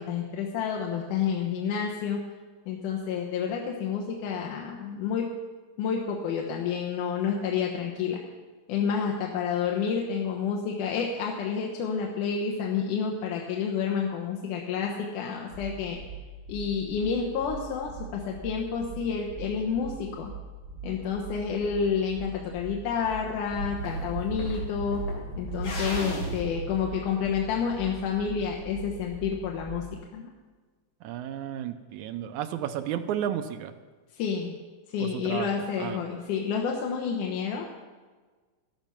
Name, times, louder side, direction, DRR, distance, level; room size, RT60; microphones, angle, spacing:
voice 1, 0.0-2.2 2.7-5.3 5.8-8.2 8.7-16.0 16.5-20.3 20.8-25.0 25.4-29.8 30.1-30.3 34.1-34.6 34.9-37.7, left 6 dB, 85° left, 0 dB, 2.7 m, -29 dB
sound 1, 15.5-30.0, right 5 dB, 50° right, 3.4 m, -42 dB
sound 2, 23.5-27.7, right 1 dB, 65° left, 4.3 m, -34 dB
voice 2, 31.0-33.7 35.0-35.5 35.8-36.0, right 10 dB, 80° right, 9 dB, 2.1 m, -32 dB
13.5 x 12.0 x 5.8 m, 1.4 s
omnidirectional pair, 3.5 m